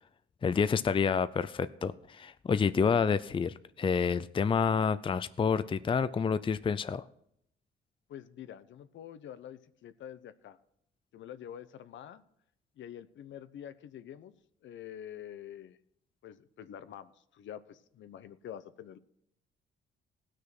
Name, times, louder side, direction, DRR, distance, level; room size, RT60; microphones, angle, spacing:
voice 1, 0.4-7.0, left 6 dB, 25° left, 14 dB, 0.5 m, -28 dB
voice 2, 8.1-10.6 11.1-12.2 12.8-14.3 14.6-15.8 16.2-19.0, left 10 dB, 70° left, 13 dB, 0.9 m, -46 dB
17.5 x 6.5 x 6.0 m, 0.72 s
cardioid pair, 90°, 20 cm